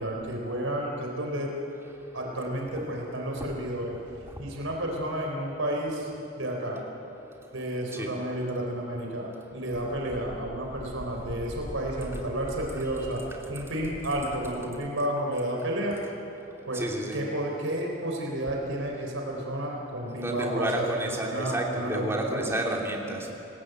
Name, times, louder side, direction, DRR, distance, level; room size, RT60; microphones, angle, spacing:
voice 1, 0.0-1.5 2.1-4.0 4.4-6.1 6.4-6.8 7.5-13.2 13.5-16.0 16.7-16.9 17.1-22.6, right 1 dB, 75° right, 0 dB, 4.2 m, -31 dB
voice 2, 16.7-17.2 20.2-23.3, right 1 dB, 10° right, -1 dB, 2.8 m, -30 dB
27.5 x 19.5 x 8.1 m, 2.9 s
head